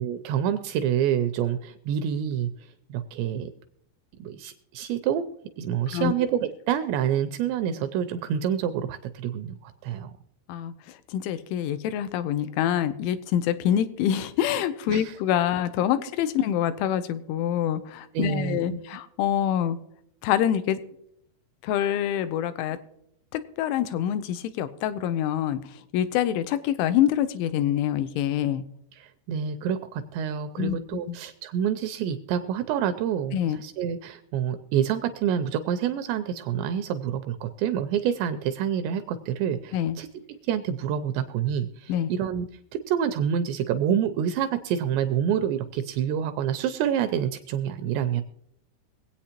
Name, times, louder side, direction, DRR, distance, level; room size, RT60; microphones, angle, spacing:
voice 1, 0.0-3.5 4.2-5.3 5.6-10.1 14.9-15.2 16.4-16.5 18.1-18.8 28.9-48.2, right 9 dB, 85° right, 9 dB, 2.5 m, -27 dB
voice 2, 11.1-19.8 20.2-20.8 21.6-22.8 23.3-25.6 25.9-28.6 30.6-30.7 31.1-31.2 33.3-33.6 39.7-40.0 41.9-42.1, left 10 dB, 85° left, 13 dB, 3.0 m, -25 dB
23.0 x 8.4 x 2.9 m, 0.76 s
omnidirectional pair, 5.4 m